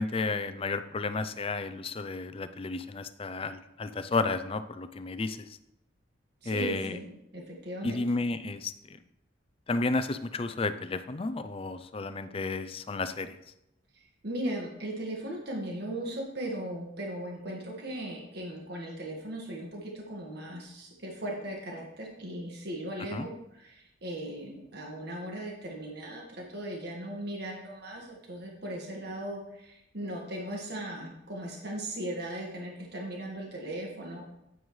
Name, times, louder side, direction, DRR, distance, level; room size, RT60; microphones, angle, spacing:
voice 1, 0.0-5.6 6.4-7.0 7.8-9.0 9.7-13.4 23.1-23.3, left 3 dB, 30° left, 11 dB, 0.4 m, -32 dB
voice 2, 6.4-8.0 14.2-34.2, right 1 dB, 55° right, -1 dB, 1.7 m, -38 dB
9.3 x 9.0 x 3.2 m, 0.84 s
head